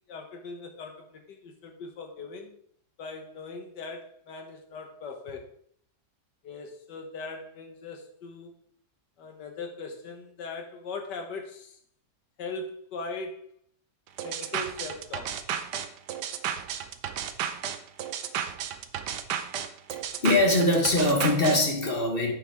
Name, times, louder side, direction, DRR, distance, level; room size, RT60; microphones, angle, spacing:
voice 1, 0.0-2.6 3.0-5.5 6.4-8.6 9.2-11.8 12.4-13.5 14.2-15.4, left 3 dB, 85° left, 4 dB, 1.9 m, -40 dB
sound 1, 14.2-21.6, right 8 dB, 80° right, 1.3 m, -33 dB
voice 2, 20.2-22.3, left 1 dB, 35° left, 2 dB, 1.5 m, -22 dB
10.0 x 7.8 x 3.6 m, 0.64 s
omnidirectional pair, 1.8 m